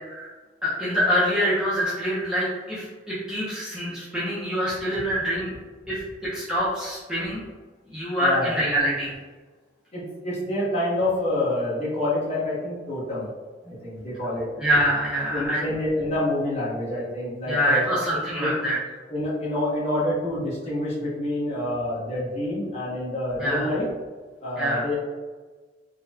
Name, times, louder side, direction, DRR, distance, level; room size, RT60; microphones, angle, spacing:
voice 1, 0.6-5.5 5.9-7.4 7.9-9.1 14.6-15.6 17.5-18.8 23.4-23.7 24.6-24.8, equal, 5° right, -9 dB, 0.7 m, -25 dB
voice 2, 8.2-8.5 9.9-13.3 13.6-14.5 15.3-17.9 18.4-18.5 19.1-23.9 24.4-25.0, left 1 dB, 35° left, -8 dB, 1.2 m, -27 dB
3.8 x 2.3 x 2.7 m, 1.3 s
head